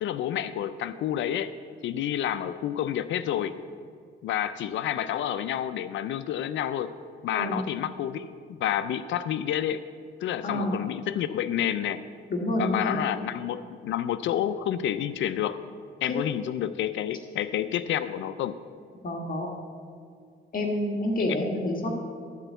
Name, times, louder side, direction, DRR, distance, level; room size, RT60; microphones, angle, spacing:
voice 1, 0.0-1.5 1.8-3.6 4.2-6.9 7.2-8.3 8.6-9.8 10.2-12.0 12.6-15.6 16.0-18.6, left 10 dB, 70° left, 13 dB, 0.4 m, -29 dB
voice 2, 7.3-7.6 10.4-10.8 12.3-13.0 19.0-19.5 20.5-21.9, left 1 dB, 45° left, 1 dB, 1.6 m, -28 dB
12.0 x 4.5 x 7.9 m, 2.2 s
cardioid pair, 90°, 20 cm